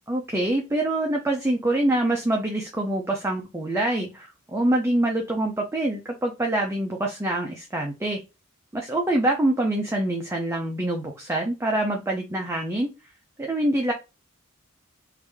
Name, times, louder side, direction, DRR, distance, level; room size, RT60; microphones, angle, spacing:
voice 1, 0.1-8.2 8.7-12.9 13.4-13.9, right 1 dB, 10° right, 0 dB, 0.5 m, -25 dB
3.3 x 2.6 x 3.4 m, 0.27 s
head